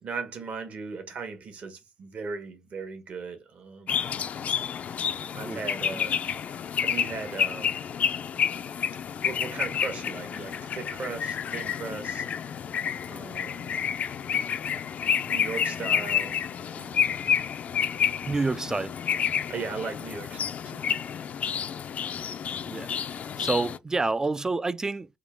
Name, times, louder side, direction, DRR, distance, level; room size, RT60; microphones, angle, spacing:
voice 1, 0.0-4.0 5.1-6.2 6.8-7.8 9.2-12.2 13.0-13.8 15.3-16.4 16.7-17.3 19.5-20.9, right 5 dB, 55° right, 1.3 m, -38 dB
sound 1, 3.9-23.8, left 8 dB, 55° left, 0.4 m, -29 dB
voice 2, 18.3-18.9 22.7-22.9 23.4-25.1, right 3 dB, 20° right, 0.3 m, -28 dB
3.6 x 2.4 x 3.5 m
cardioid pair, 80°, 3 cm